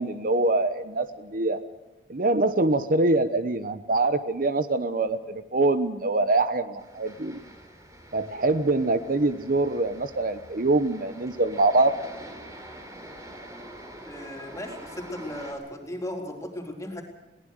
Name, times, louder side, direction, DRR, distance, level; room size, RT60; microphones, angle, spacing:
voice 1, 0.0-1.6 2.1-7.4 8.1-12.0, right 2 dB, 50° right, 11 dB, 1.0 m, -24 dB
sound 1, 6.8-15.5, right 1 dB, 20° right, 3.9 m, -45 dB
voice 2, 14.0-17.0, left 1 dB, 20° left, 1 dB, 3.9 m, -36 dB
22.0 x 18.5 x 6.5 m, 1.1 s
head